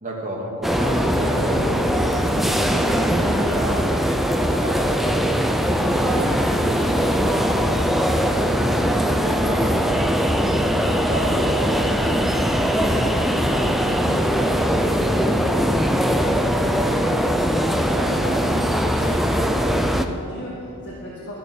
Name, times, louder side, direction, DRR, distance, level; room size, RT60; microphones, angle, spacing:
voice 1, 0.0-3.8 4.4-5.4 5.7-7.7 8.1-9.9 10.2-15.5 16.3-17.1, right 1 dB, 35° right, -2 dB, 2.2 m, -32 dB
sound 1, 0.6-20.1, equal, ahead, 0.4 m, -21 dB
Keyboard (musical), 7.3-9.8, left 1 dB, 80° right, 3.3 m, -44 dB
voice 2, 17.8-21.4, equal, 50° left, -5 dB, 1.7 m, -34 dB
13.0 x 6.9 x 6.9 m, 2.9 s
head